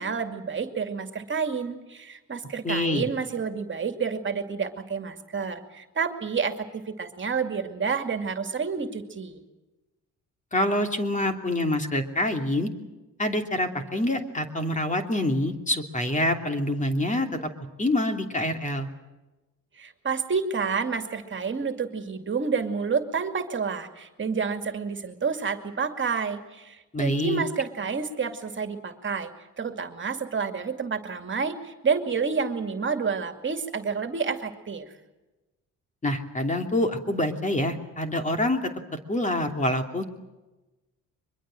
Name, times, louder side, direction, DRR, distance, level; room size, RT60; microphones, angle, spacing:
voice 1, 0.0-9.4 19.8-29.3 29.6-34.9, right 5 dB, 40° right, 7 dB, 2.4 m, -29 dB
voice 2, 2.6-3.1 10.5-12.7 13.2-17.5 17.8-18.9 26.9-27.4 36.0-38.7 39.1-40.0, left 1 dB, 25° left, 5 dB, 2.9 m, -26 dB
23.5 x 21.5 x 7.7 m, 1.1 s
cardioid pair, 90°, 30 cm